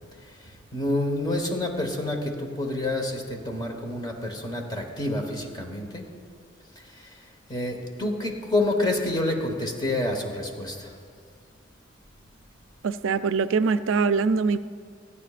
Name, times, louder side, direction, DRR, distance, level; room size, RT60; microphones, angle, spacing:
voice 1, 0.7-6.0 7.5-10.9, left 2 dB, 20° left, 2 dB, 1.3 m, -28 dB
voice 2, 12.8-14.6, right 5 dB, 85° right, 12 dB, 0.4 m, -23 dB
29.0 x 9.8 x 2.5 m, 2.1 s
head